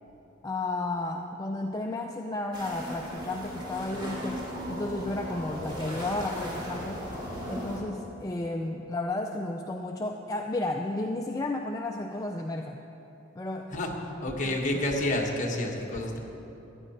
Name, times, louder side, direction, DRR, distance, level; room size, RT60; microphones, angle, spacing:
voice 1, 0.4-7.0 7.5-12.8 13.4-13.8 14.4-14.6, left 2 dB, 20° left, 2 dB, 0.4 m, -33 dB
sound 1, 2.5-7.8, equal, 25° right, 2.3 m, -37 dB
voice 2, 14.2-16.2, left 1 dB, 40° left, -1 dB, 1.4 m, -29 dB
14.5 x 10.0 x 4.3 m, 3.0 s
head